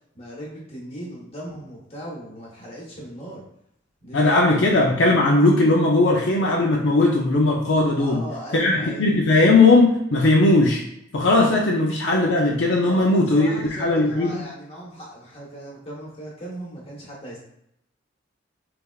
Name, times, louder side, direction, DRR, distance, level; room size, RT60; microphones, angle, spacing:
voice 1, 0.1-3.4 4.0-4.6 8.0-9.1 11.6-11.7 12.8-17.4, right 1 dB, 30° left, -4 dB, 1.1 m, -37 dB
voice 2, 4.1-8.2 8.5-10.8 11.1-14.4, left 2 dB, 65° left, -2 dB, 0.5 m, -18 dB
3.4 x 3.4 x 2.3 m, 0.77 s
head